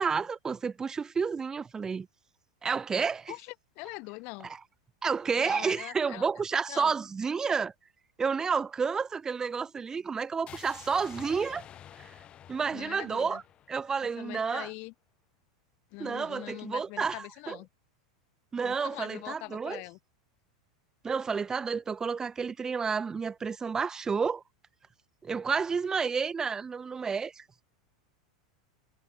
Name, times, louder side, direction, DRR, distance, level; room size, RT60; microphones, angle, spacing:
voice 1, 0.0-2.1 2.6-3.3 4.4-4.6 5.0-7.7 8.2-11.7 12.0-12.1 12.5-13.4 13.7-14.7 16.0-17.6 18.5-19.8 21.0-24.4 25.2-27.4, right 5 dB, 20° right, 3.3 m, -30 dB
voice 2, 3.3-4.5 5.4-6.3 6.7-6.9 12.7-13.4 14.0-14.9 15.9-17.7 18.6-20.0, left 29 dB, 50° left, 3.4 m, -42 dB
sound 1, 10.5-14.5, left 10 dB, 30° left, 5.0 m, -50 dB
figure-of-eight pair, 90°, 3 cm